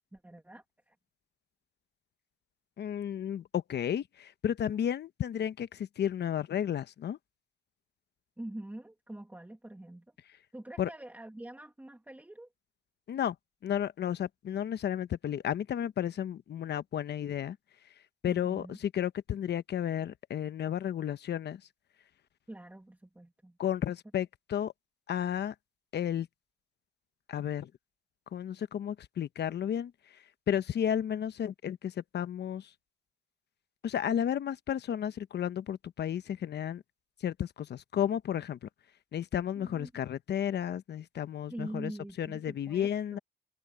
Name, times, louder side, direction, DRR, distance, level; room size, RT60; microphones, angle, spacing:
voice 1, 0.1-1.0 8.4-10.1 10.5-12.5 18.2-18.8 22.5-23.6 39.6-39.9 41.5-43.2, right 1 dB, 10° right, 1.7 m, -45 dB
voice 2, 2.8-7.2 10.8-10.9 13.1-13.3 13.6-17.6 18.2-21.6 23.6-24.7 25.1-25.5 25.9-26.3 27.3-27.7 28.3-29.9 30.5-32.7 33.8-36.8 37.2-38.6 39.1-41.9 42.2-43.2, left 9 dB, 60° left, 1.0 m, -32 dB
cardioid pair, 90°, 20 cm